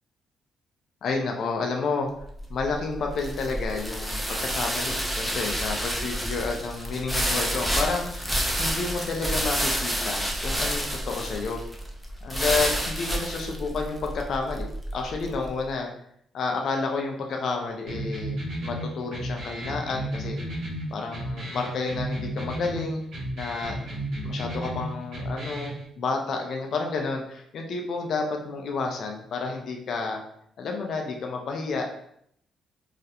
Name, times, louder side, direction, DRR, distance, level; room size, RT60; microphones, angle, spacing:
voice 1, 1.0-2.1 2.5-8.3 8.6-11.6 12.2-14.7 14.9-15.9 16.3-20.4 20.9-23.0 23.3-23.7 24.2-30.2 30.6-32.1, left 4 dB, 60° left, 2 dB, 0.4 m, -30 dB
sound 1, 2.2-15.5, equal, ahead, 0.5 m, -29 dB
sound 2, 17.9-25.8, right 1 dB, 70° right, 0.7 m, -33 dB
2.4 x 2.0 x 2.7 m, 0.70 s
cardioid pair, 90°, 0 cm